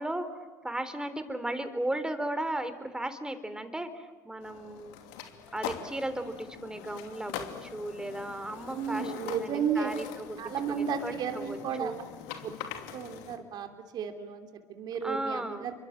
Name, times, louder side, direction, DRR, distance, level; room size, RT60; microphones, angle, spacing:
voice 1, 0.0-5.0 5.5-10.4 10.7-12.0 15.0-15.7, right 1 dB, 10° right, 10 dB, 3.9 m, -36 dB
sound 1, 4.4-13.4, left 9 dB, 70° left, 2.8 m, -43 dB
voice 2, 8.7-9.9 10.4-12.0 12.4-12.5 12.9-13.7 13.9-15.7, right 7 dB, 55° right, 6 dB, 3.2 m, -33 dB
29.5 x 24.5 x 7.6 m, 1.4 s
hypercardioid pair, 70°, 9 cm